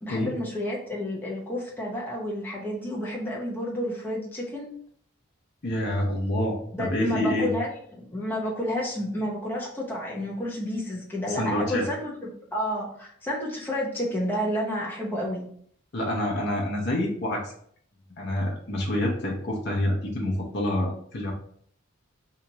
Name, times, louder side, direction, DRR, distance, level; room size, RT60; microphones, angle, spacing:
voice 1, 0.0-4.7 6.7-15.4, equal, 10° left, -4 dB, 0.6 m, -30 dB
voice 2, 5.6-7.5 11.3-11.9 15.9-17.5 18.2-21.3, left 1 dB, 50° left, -2 dB, 0.7 m, -27 dB
2.9 x 2.4 x 4.0 m, 0.62 s
head